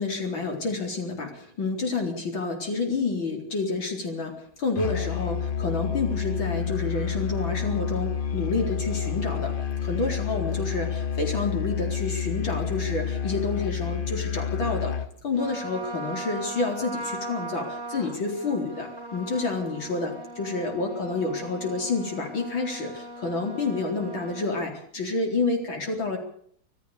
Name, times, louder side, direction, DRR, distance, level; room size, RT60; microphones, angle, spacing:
voice 1, 0.0-9.5 9.8-14.9 15.2-26.2, left 3 dB, 65° left, 2 dB, 4.9 m, -29 dB
Musical instrument, 4.8-15.1, left 7 dB, 50° left, 0.6 m, -29 dB
Trumpet, 15.3-24.7, right 2 dB, 10° right, 4.2 m, -39 dB
26.0 x 14.5 x 6.9 m, 0.62 s
omnidirectional pair, 2.3 m